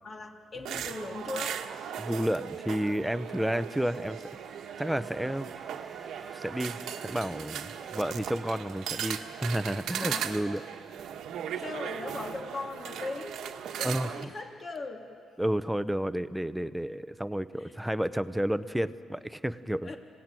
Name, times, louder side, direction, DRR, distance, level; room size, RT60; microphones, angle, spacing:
voice 1, 0.0-1.6 10.0-10.3 11.1-11.3 11.6-13.4 13.7-15.1 17.6-17.8 19.8-20.0, left 3 dB, 40° left, 3 dB, 3.0 m, -39 dB
sound 1, 0.6-14.2, right 9 dB, 80° right, 1.2 m, -38 dB
voice 2, 2.0-4.2 4.8-5.5 6.3-6.8 7.0-10.6 13.8-14.1 15.4-19.9, equal, 5° right, 13 dB, 0.8 m, -31 dB
sound 2, 2.9-10.5, right 3 dB, 25° right, 1.7 m, -54 dB
27.0 x 17.5 x 9.1 m, 2.3 s
cardioid pair, 90°, 0 cm